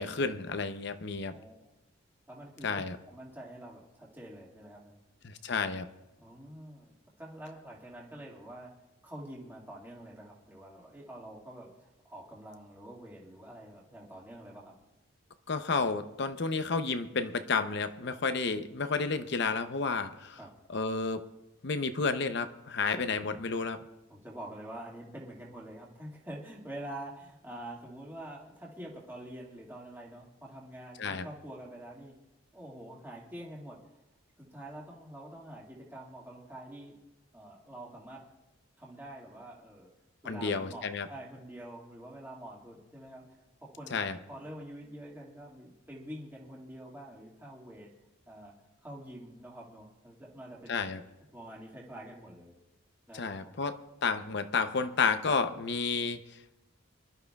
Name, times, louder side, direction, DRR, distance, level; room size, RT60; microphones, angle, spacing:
voice 1, 0.0-1.3 2.6-3.0 5.2-5.9 15.5-20.4 20.7-21.2 21.6-23.8 31.0-31.3 40.3-41.1 43.9-44.2 50.7-51.0 53.1-53.8 54.0-56.2, left 4 dB, 55° left, 9 dB, 0.7 m, -31 dB
voice 2, 2.3-5.0 6.2-8.7 9.0-14.8 20.4-20.5 22.9-23.3 24.1-32.1 32.5-33.8 34.4-36.9 37.3-38.2 38.8-39.9 40.2-43.2 43.6-43.9 44.3-47.9 48.3-48.5 48.8-50.9 51.3-52.5 53.1-53.5, right 1 dB, 10° right, -4 dB, 2.0 m, -46 dB
25.5 x 12.5 x 2.3 m, 0.97 s
head